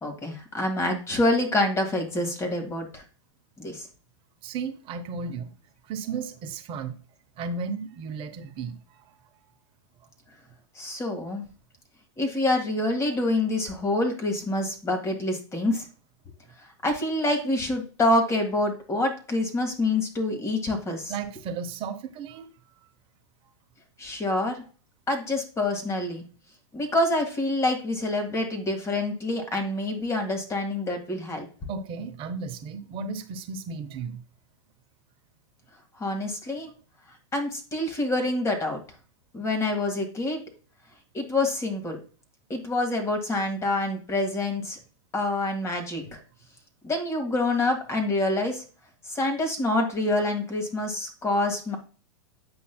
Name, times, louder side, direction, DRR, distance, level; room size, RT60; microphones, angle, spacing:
voice 1, 0.0-3.0 3.6-3.9 10.8-11.4 12.2-15.9 16.8-21.1 24.0-24.6 25.1-26.2 26.7-31.5 36.0-36.7 37.3-38.8 39.3-40.4 41.1-42.0 42.5-44.8 45.1-46.2 46.8-48.6 49.1-51.8, left 2 dB, 20° left, 1.8 m, -26 dB
voice 2, 4.4-5.5 5.8-7.0 7.4-9.6 21.1-22.5 31.7-34.2, right 5 dB, 35° right, 0.8 m, -34 dB
8.6 x 5.4 x 2.2 m
hypercardioid pair, 115°, 15 cm